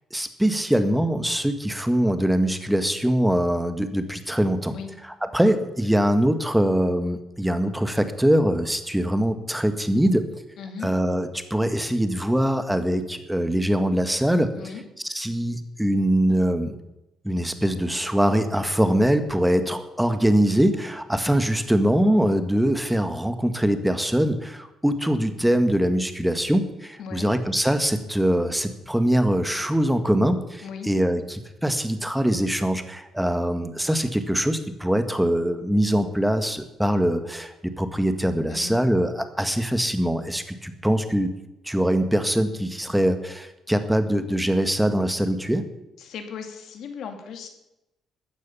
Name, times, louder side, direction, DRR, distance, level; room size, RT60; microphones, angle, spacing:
voice 1, 0.1-4.7 5.3-10.3 10.8-14.5 15.0-16.7 17.2-41.3 41.6-45.6, equal, 5° right, 8 dB, 1.6 m, -23 dB
voice 2, 10.6-10.9 14.6-14.8 27.0-27.3 30.6-30.9 38.5-38.8 46.0-47.5, left 6 dB, 75° left, 5 dB, 2.6 m, -37 dB
14.5 x 9.6 x 7.2 m, 0.92 s
cardioid pair, 90°, 0 cm